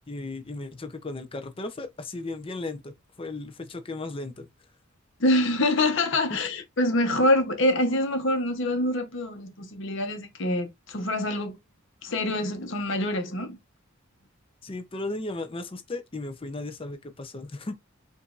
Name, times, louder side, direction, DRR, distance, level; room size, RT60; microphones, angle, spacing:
voice 1, 0.1-4.5 14.6-17.8, left 2 dB, 25° left, 0.6 m, -36 dB
voice 2, 5.2-11.6 12.0-13.6, left 1 dB, 60° left, 1.0 m, -25 dB
4.9 x 2.6 x 2.5 m
head